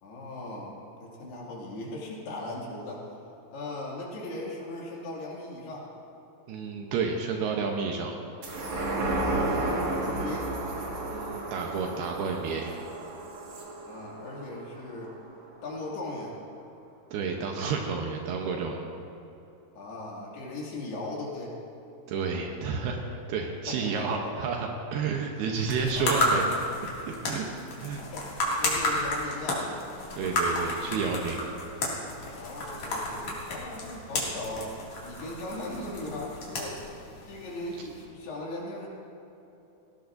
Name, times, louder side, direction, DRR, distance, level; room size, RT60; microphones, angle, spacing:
voice 1, 0.0-0.7 1.0-3.1 3.5-5.9 9.3-10.5 13.8-15.2 15.6-16.4 19.8-21.6 23.7-24.3 25.9-26.6 27.7-29.7 32.4-34.7 35.0-38.9, left 2 dB, 75° left, -4 dB, 4.3 m, -38 dB
voice 2, 6.5-8.1 11.1-12.7 17.1-18.8 22.1-26.4 27.0-27.5 27.8-28.0 30.1-31.4, right 5 dB, 75° right, 1 dB, 2.7 m, -30 dB
sound 1, 8.4-15.2 15.6-15.7, right 2 dB, 50° right, 2.5 m, -32 dB
sound 2, 25.5-38.0, left 1 dB, 50° left, 3.3 m, -32 dB
18.5 x 16.5 x 2.6 m, 2.9 s
omnidirectional pair, 4.8 m